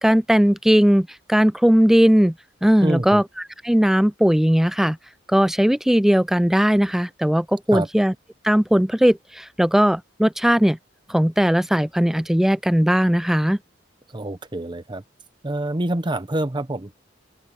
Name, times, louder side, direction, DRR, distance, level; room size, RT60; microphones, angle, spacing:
voice 1, 0.0-2.3 2.6-3.2 3.6-5.0 5.3-8.1 8.4-10.8 11.1-13.6, equal, ahead, 0.3 m, -18 dB
voice 2, 2.8-3.2 7.7-7.9 14.1-15.0 15.4-17.1, right 1 dB, 25° right, 0.9 m, -26 dB
open air
head